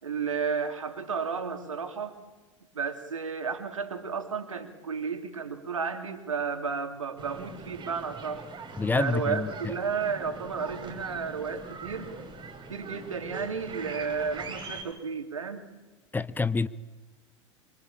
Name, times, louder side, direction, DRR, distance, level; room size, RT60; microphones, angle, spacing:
voice 1, 0.0-2.2 2.7-8.5 8.9-12.1 12.7-15.7, right 5 dB, 80° right, 7 dB, 3.0 m, -32 dB
sound 1, 7.2-14.8, right 4 dB, 30° right, 6.6 m, -42 dB
voice 2, 8.8-9.7 16.1-16.7, left 4 dB, 10° left, 17 dB, 1.0 m, -27 dB
26.5 x 25.0 x 8.7 m, 1.2 s
figure-of-eight pair, 85°, 16 cm